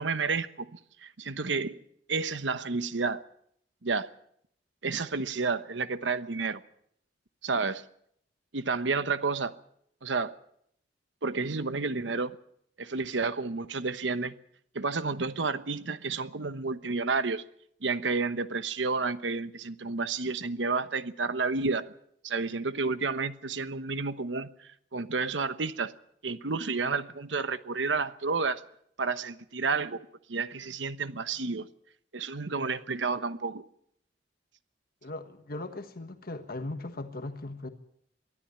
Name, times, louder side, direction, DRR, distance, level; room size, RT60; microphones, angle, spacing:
voice 1, 0.0-1.8 2.1-3.2 3.8-4.1 4.8-6.6 7.4-7.8 8.5-9.5 10.0-10.4 11.2-12.4 12.8-14.3 14.7-17.4 17.8-21.9 22.2-25.9 26.2-28.6 29.0-31.7 32.1-33.6, right 4 dB, 80° right, 1.1 m, -31 dB
voice 2, 35.0-37.7, left 2 dB, 55° left, 1.5 m, -38 dB
23.0 x 13.5 x 8.8 m
head